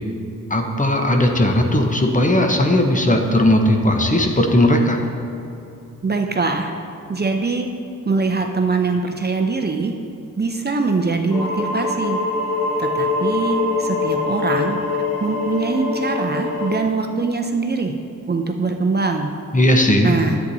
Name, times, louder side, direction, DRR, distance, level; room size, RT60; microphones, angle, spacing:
voice 1, 0.5-5.0 19.5-20.1, left 1 dB, 25° left, 3 dB, 0.9 m, -17 dB
voice 2, 6.0-6.7 7.1-7.7 8.0-9.9 10.4-12.2 12.8-14.8 15.2-18.0 18.3-19.3 20.0-20.4, right 4 dB, 30° right, 3 dB, 0.6 m, -22 dB
sound 1, 11.3-16.8, left 3 dB, 90° left, 1.2 m, -23 dB
10.5 x 8.2 x 2.7 m, 2.8 s
cardioid pair, 60°, 31 cm